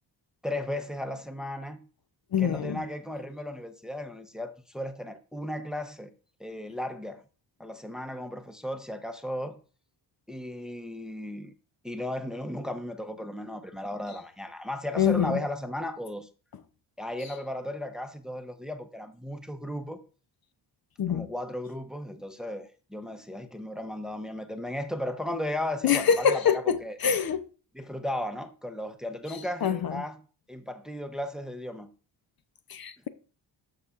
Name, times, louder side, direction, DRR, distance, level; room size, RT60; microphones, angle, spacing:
voice 1, 0.4-1.9 2.4-6.1 6.4-7.2 7.6-9.6 10.3-11.5 11.8-16.3 17.0-20.0 21.1-27.0 27.7-30.2 30.5-31.9, left 1 dB, ahead, 0.8 m, -35 dB
voice 2, 2.3-2.8 15.0-15.4 21.0-21.3 25.8-26.8 27.0-27.4 29.6-29.9 32.7-33.1, left 7 dB, 50° left, 0.7 m, -24 dB
13.5 x 5.5 x 2.5 m
cardioid pair, 95°, 45 cm